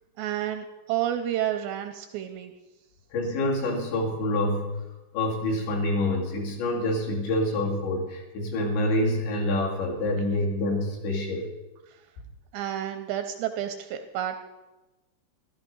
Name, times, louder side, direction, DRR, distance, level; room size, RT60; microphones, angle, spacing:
voice 1, 0.2-2.5 12.5-14.4, right 11 dB, 80° right, 7 dB, 2.6 m, -30 dB
voice 2, 3.1-4.7 5.1-11.5, left 1 dB, 70° left, -1 dB, 4.6 m, -27 dB
14.5 x 12.5 x 5.3 m, 1.1 s
omnidirectional pair, 5.5 m